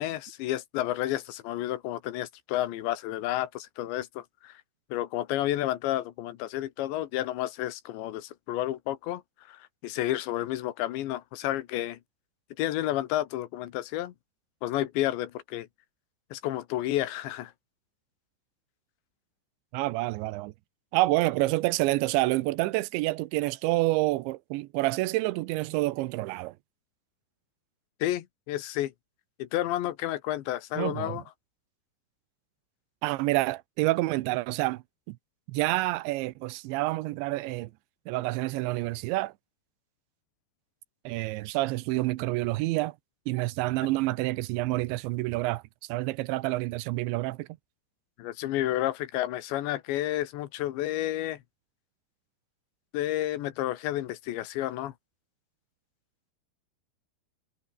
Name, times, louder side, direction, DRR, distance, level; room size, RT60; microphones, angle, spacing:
voice 1, 0.0-4.6 4.9-9.2 9.5-12.0 12.6-14.1 14.6-15.7 16.3-17.5 28.0-28.9 29.4-31.2 48.2-51.4 52.9-54.9, left 14 dB, 80° left, 3.6 m, -31 dB
voice 2, 19.7-20.5 20.9-26.5 30.8-31.2 33.0-35.2 35.5-37.7 38.1-39.3 41.0-43.0 43.3-45.6 45.9-47.5, right 19 dB, 85° right, 3.1 m, -28 dB
omnidirectional pair, 5.2 m